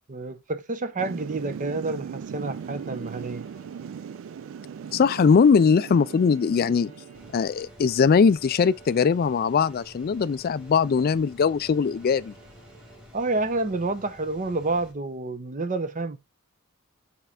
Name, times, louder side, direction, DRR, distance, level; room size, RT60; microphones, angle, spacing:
voice 1, 0.1-3.5 13.1-16.2, right 3 dB, 35° right, 0.7 m, -29 dB
Thunder / Rain, 1.0-7.4, right 7 dB, 65° right, 0.3 m, -38 dB
Bowed string instrument, 2.4-13.5, right 4 dB, 90° right, 3.2 m, -54 dB
voice 2, 4.9-6.9 7.3-12.3, left 5 dB, 45° left, 0.3 m, -21 dB
sound 1, 7.1-14.9, left 1 dB, 5° right, 2.1 m, -51 dB
5.6 x 4.5 x 3.8 m
head